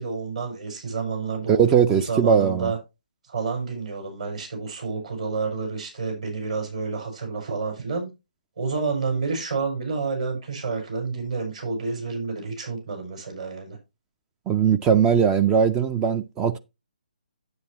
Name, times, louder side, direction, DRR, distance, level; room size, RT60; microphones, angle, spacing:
voice 1, 0.0-2.8 3.3-8.1 8.6-13.8, right 4 dB, 55° right, 6.2 m, -29 dB
voice 2, 1.5-2.7 14.5-16.6, right 7 dB, 15° right, 0.4 m, -20 dB
9.5 x 8.6 x 2.9 m
figure-of-eight pair, 140°, 5 cm